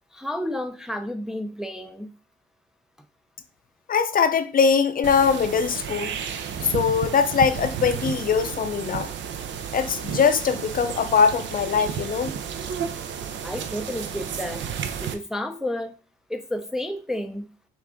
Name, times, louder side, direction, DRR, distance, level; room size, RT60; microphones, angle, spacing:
voice 1, 0.1-2.2 13.4-14.7 15.0-16.0 16.3-17.5, left 1 dB, 5° right, 0.4 m, -31 dB
voice 2, 3.9-6.2 6.6-9.1 9.7-12.3, left 6 dB, 45° left, 0.5 m, -22 dB
sound 1, 5.0-15.1, right 8 dB, 65° right, 0.6 m, -32 dB
5.7 x 2.4 x 3.6 m
cardioid pair, 90°, 20 cm